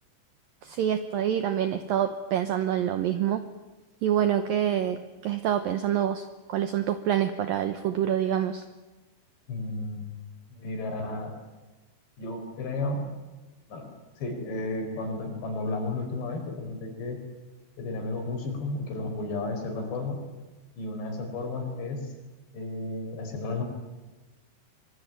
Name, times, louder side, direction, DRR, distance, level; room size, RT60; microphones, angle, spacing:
voice 1, 0.7-3.4 4.0-6.2 6.5-8.6, right 10 dB, 90° right, 10 dB, 2.0 m, -26 dB
voice 2, 9.5-10.1 10.5-11.4 12.2-13.0 13.7-13.9 14.2-17.2 17.8-20.2 20.8-22.0 22.5-23.6, left 2 dB, 65° left, 4 dB, 6.7 m, -33 dB
25.0 x 23.0 x 9.3 m, 1.2 s
omnidirectional pair, 5.5 m